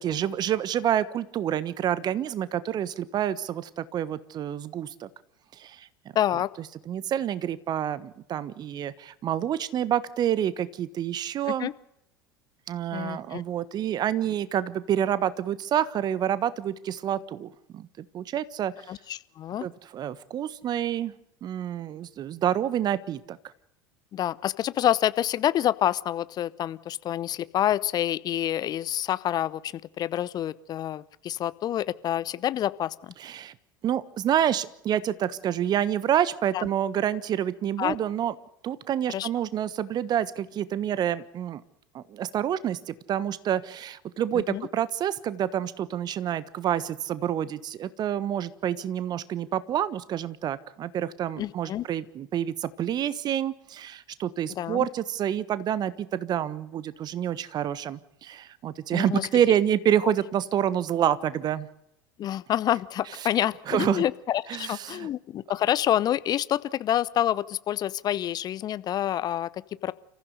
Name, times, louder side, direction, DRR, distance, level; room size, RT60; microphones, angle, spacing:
voice 1, 0.0-5.1 5.6-5.9 6.9-11.7 12.7-18.7 19.6-21.1 21.4-23.4 33.2-33.5 33.8-38.3 38.6-41.6 41.9-61.7 63.7-64.0 64.5-65.1, right 10 dB, 40° right, 16 dB, 1.3 m, -28 dB
voice 2, 6.1-6.5 11.5-11.7 12.9-13.4 18.9-19.7 24.1-33.1 36.5-36.7 37.8-38.0 39.1-39.3 44.5-44.7 51.4-51.8 54.5-54.9 58.9-59.3 62.2-69.9, left 11 dB, 40° left, 19 dB, 0.8 m, -27 dB
29.0 x 15.0 x 6.7 m, 0.81 s
figure-of-eight pair, 75°, 11 cm